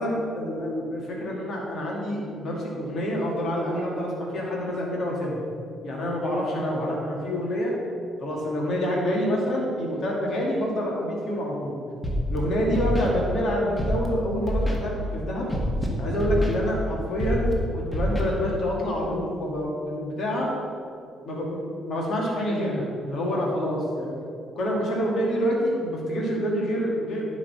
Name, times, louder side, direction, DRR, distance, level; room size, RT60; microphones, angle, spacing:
voice 1, 0.0-5.4 5.8-7.7 8.2-11.8 12.3-15.5 16.0-20.5 21.2-24.1 24.5-27.4, equal, 55° left, -2 dB, 2.3 m, -27 dB
Scratching (performance technique), 12.0-12.4 12.7-13.1 13.8-14.1 14.5-14.8 15.5-15.9 16.2-16.5 17.2-17.5 17.9-18.2, equal, 20° left, 1.8 m, -25 dB
9.9 x 4.2 x 6.9 m, 2.4 s
figure-of-eight pair, 45°, 0 cm